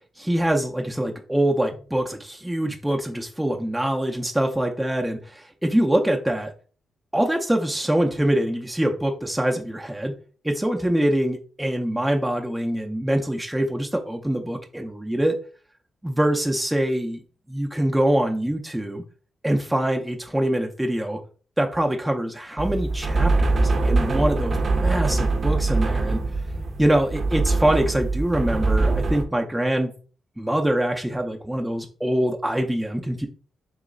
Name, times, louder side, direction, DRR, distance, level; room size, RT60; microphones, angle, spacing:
voice 1, 0.2-6.5 7.1-10.1 10.4-15.4 16.0-17.2 17.5-19.0 19.4-21.2 21.6-26.2 26.8-29.9 30.4-33.3, right 1 dB, 5° right, 2 dB, 0.6 m, -24 dB
sound 1, 22.6-29.2, right 3 dB, 50° right, 0.7 m, -23 dB
3.1 x 3.0 x 3.7 m, 0.40 s
cardioid pair, 70°, 0 cm